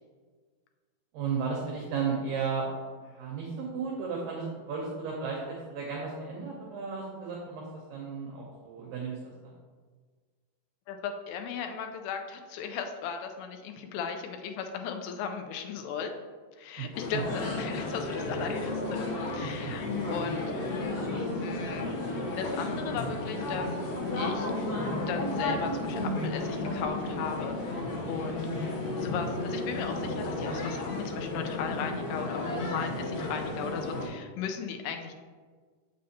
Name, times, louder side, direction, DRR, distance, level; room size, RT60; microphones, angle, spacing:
voice 1, 1.1-2.7 3.0-9.2 9.4-9.5 16.8-17.2 19.6-19.7 28.3-28.4, right 5 dB, 70° right, -2 dB, 2.3 m, -34 dB
voice 2, 10.9-16.1 16.6-19.0 19.3-20.7 21.4-21.9 22.3-23.7 24.1-24.5 25.1-27.8 28.1-28.6 29.0-35.1, left 6 dB, 85° left, 5 dB, 2.6 m, -36 dB
sound 1, 16.9-34.1, left 2 dB, 60° left, 2.1 m, -33 dB
7.6 x 6.4 x 2.8 m, 1.5 s
omnidirectional pair, 4.7 m